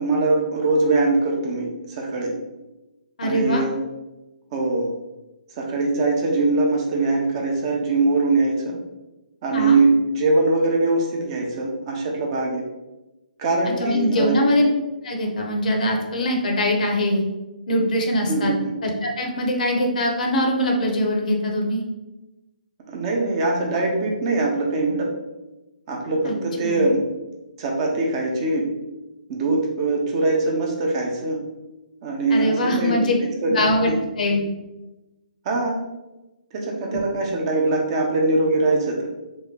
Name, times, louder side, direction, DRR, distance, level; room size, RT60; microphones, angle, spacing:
voice 1, 0.0-2.3 3.2-3.7 4.5-4.9 5.6-8.8 9.4-12.7 13.4-14.4 18.3-18.6 22.9-25.1 25.9-27.0 27.6-28.7 29.3-31.4 32.0-33.1 33.4-34.0 35.5-35.8 36.5-39.1, right 2 dB, 35° right, 0 dB, 0.6 m, -22 dB
voice 2, 3.2-3.7 9.5-9.8 13.8-14.7 15.0-17.2 17.7-18.5 18.8-21.8 26.2-26.4 26.6-26.9 32.3-33.1 33.5-34.4 36.9-37.0, left 1 dB, 60° left, 1 dB, 0.7 m, -22 dB
3.1 x 2.2 x 3.6 m, 1.0 s
hypercardioid pair, 140°, 5 cm